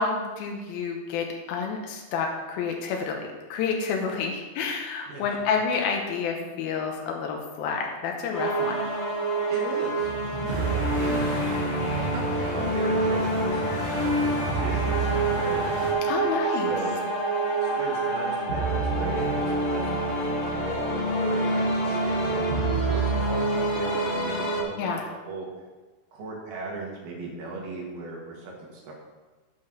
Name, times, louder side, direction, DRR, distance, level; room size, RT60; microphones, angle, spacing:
voice 1, 0.0-8.9 16.0-16.8 24.8-25.0, left 5 dB, 90° left, 2 dB, 2.8 m, -29 dB
voice 2, 5.1-5.4 6.4-6.5 9.5-11.5 11.9-15.7 16.5-17.0 17.6-20.0 20.4-25.5 26.1-28.9, right 3 dB, 80° right, -2 dB, 3.6 m, -37 dB
sound 1, 8.3-24.6, right 2 dB, 60° left, 0.6 m, -26 dB
sound 2, 10.4-15.9, right 1 dB, 25° right, 1.1 m, -34 dB
9.2 x 5.9 x 6.1 m, 1.2 s
omnidirectional pair, 4.2 m